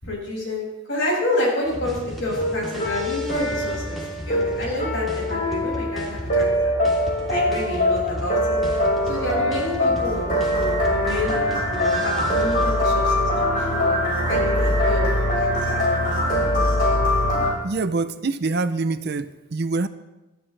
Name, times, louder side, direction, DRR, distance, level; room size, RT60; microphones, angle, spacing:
voice 1, 0.0-4.0 4.2-6.7 7.3-13.9 14.3-15.1 15.3-15.8, left 1 dB, 60° left, -3 dB, 6.3 m, -29 dB
sound 1, 1.6-12.6, equal, ahead, 3.1 m, -34 dB
sound 2, 2.4-17.5, left 1 dB, 40° left, 5.6 m, -22 dB
voice 2, 17.6-19.9, right 3 dB, 50° right, 11 dB, 0.6 m, -25 dB
20.0 x 13.5 x 3.3 m, 1.1 s
head